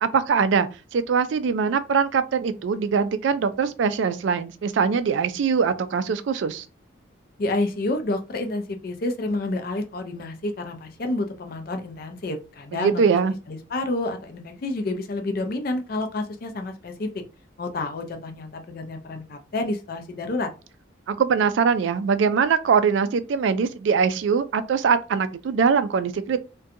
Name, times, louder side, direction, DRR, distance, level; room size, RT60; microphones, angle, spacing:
voice 1, 0.0-6.7 12.7-13.3 21.1-26.4, right 6 dB, 65° right, 0.3 m, -22 dB
voice 2, 7.4-13.0 13.5-17.2 17.6-20.5, left 2 dB, 50° left, 0.4 m, -29 dB
2.5 x 2.2 x 2.6 m
head